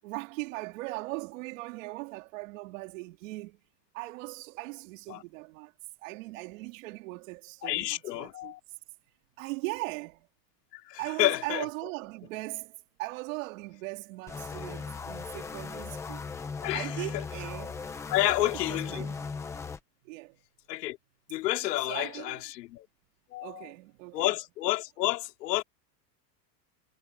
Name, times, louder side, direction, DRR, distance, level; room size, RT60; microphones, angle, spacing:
voice 1, 0.0-3.6 3.9-5.7 6.0-8.5 9.4-10.3 11.0-16.3 16.7-17.9 18.3-19.5 20.0-20.4 21.8-22.4 23.4-24.4, right 23 dB, 50° right, 3.6 m, -39 dB
voice 2, 7.6-8.6 10.7-11.6 16.6-16.9 17.1-17.2 18.1-19.1 20.7-21.0 21.3-22.9 23.3-23.7 24.1-25.6, left 17 dB, 70° left, 2.9 m, -30 dB
sound 1, 14.3-19.8, left 5 dB, 5° left, 0.7 m, -38 dB
supercardioid pair, 175°, 49 cm